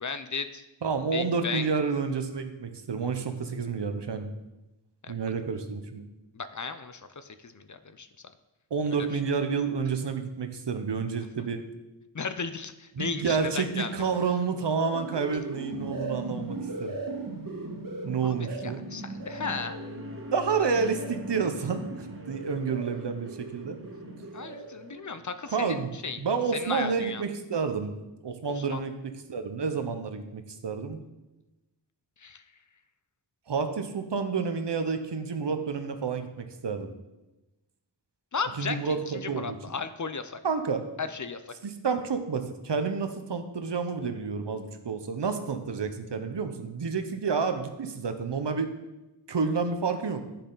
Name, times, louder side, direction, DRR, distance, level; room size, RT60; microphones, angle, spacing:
voice 1, 0.0-0.6 1.1-1.7 5.0-5.1 6.3-8.1 12.1-13.9 18.2-18.3 18.6-19.8 24.3-26.2 26.5-27.2 28.6-28.8 32.2-32.4 38.3-40.4 41.0-41.5, left 5 dB, 45° left, 11 dB, 0.6 m, -35 dB
voice 2, 0.8-4.3 5.1-6.0 8.7-11.6 13.0-17.0 18.0-18.8 20.3-23.8 25.5-25.9 26.2-27.9 28.2-31.0 33.5-36.9 38.6-39.6 40.4-40.8 41.6-48.7 49.3-50.2, right 5 dB, 70° right, 7 dB, 0.9 m, -29 dB
sound 1, 14.4-24.9, right 3 dB, 50° right, 1.7 m, -39 dB
sound 2, 18.8-25.4, left 1 dB, 30° right, 1.2 m, -45 dB
9.8 x 6.7 x 3.9 m, 1.0 s
wide cardioid pair, 70°, 43 cm